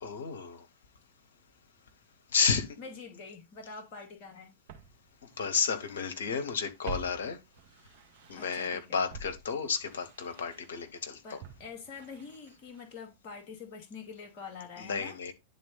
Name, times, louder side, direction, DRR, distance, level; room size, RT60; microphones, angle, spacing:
voice 1, 0.0-0.6 2.3-2.7 5.4-7.4 8.3-11.4 14.8-15.3, left 5 dB, 65° left, 1.6 m, -31 dB
voice 2, 2.8-4.5 8.3-9.1 11.2-15.2, left 5 dB, 40° left, 2.3 m, -46 dB
Walk footsteps, 4.0-4.1 4.7-6.2 6.4-8.7 9.1-13.1 13.4-13.5, right 4 dB, 50° right, 1.6 m, -48 dB
10.0 x 3.9 x 4.0 m
figure-of-eight pair, 90°, 0 cm